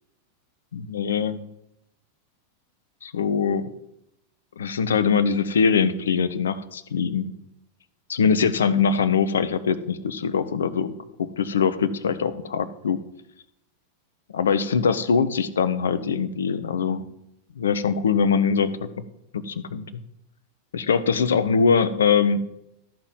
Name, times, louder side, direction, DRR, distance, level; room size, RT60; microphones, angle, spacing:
voice 1, 0.7-1.4 3.0-3.7 4.6-7.3 8.1-10.9 11.2-13.0 14.3-17.0 17.6-18.9 19.3-20.0 20.7-22.4, left 6 dB, 65° left, 14 dB, 0.9 m, -22 dB
13.5 x 6.1 x 7.4 m, 0.79 s
figure-of-eight pair, 90°, 0 cm